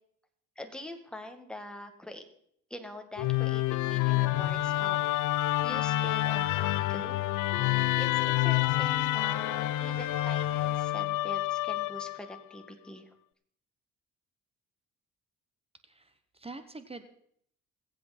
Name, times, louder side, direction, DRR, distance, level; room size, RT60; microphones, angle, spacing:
voice 1, 0.6-2.3 2.7-5.0 5.6-7.2 8.0-13.1, left 1 dB, 5° left, 5 dB, 1.9 m, -44 dB
Musical instrument, 3.2-12.4, left 15 dB, 80° left, 0.5 m, -28 dB
voice 2, 15.8-17.0, right 3 dB, 20° right, 10 dB, 1.1 m, -45 dB
22.0 x 8.0 x 4.3 m, 0.66 s
cardioid pair, 90°, 30 cm